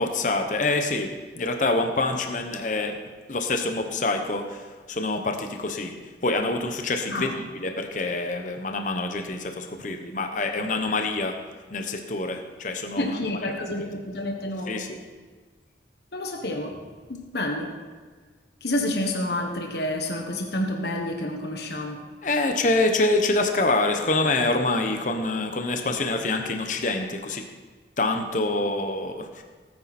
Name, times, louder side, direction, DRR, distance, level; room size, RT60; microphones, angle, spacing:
voice 1, 0.0-3.0 3.3-5.9 6.2-11.4 11.7-13.5 13.8-13.9 14.7-15.0 22.2-27.4 28.0-29.4, left 2 dB, 45° left, 5 dB, 1.0 m, -26 dB
voice 2, 13.0-14.8 16.1-16.8 17.1-17.7 18.6-22.0, left 1 dB, 65° left, 2 dB, 1.4 m, -29 dB
18.0 x 9.6 x 4.3 m, 1.4 s
head